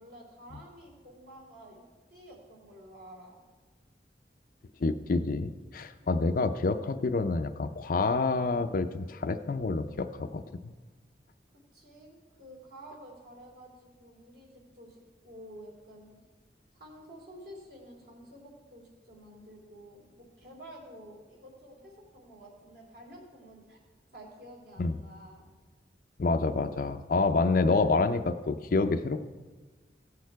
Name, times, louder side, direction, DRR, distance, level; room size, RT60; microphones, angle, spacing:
voice 1, 0.0-1.8 2.1-3.4 6.0-6.3 11.7-16.2 16.7-23.8 24.1-25.5, equal, 60° right, -1 dB, 3.1 m, -50 dB
voice 2, 4.8-10.7 24.8-25.0 26.2-29.2, left 3 dB, 50° left, 7 dB, 0.5 m, -28 dB
17.0 x 6.5 x 4.6 m, 1.3 s
head